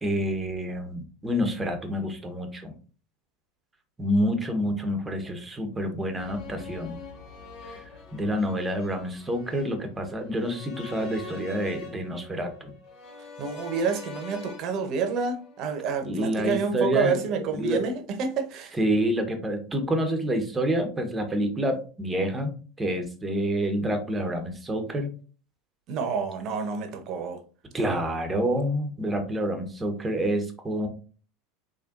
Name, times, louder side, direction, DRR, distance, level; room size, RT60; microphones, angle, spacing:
voice 1, 0.0-2.8 4.0-7.0 7.7-12.7 16.0-17.9 18.7-22.5 22.8-25.1 27.7-30.9, equal, 15° right, 1.0 m, -28 dB
sound 1, 6.2-16.3 16.6-16.7, left 4 dB, 50° left, 1.3 m, -44 dB
voice 2, 13.4-18.8 25.9-27.4, right 5 dB, 50° right, 0.9 m, -28 dB
4.4 x 3.2 x 2.5 m
hypercardioid pair, 85°, 0 cm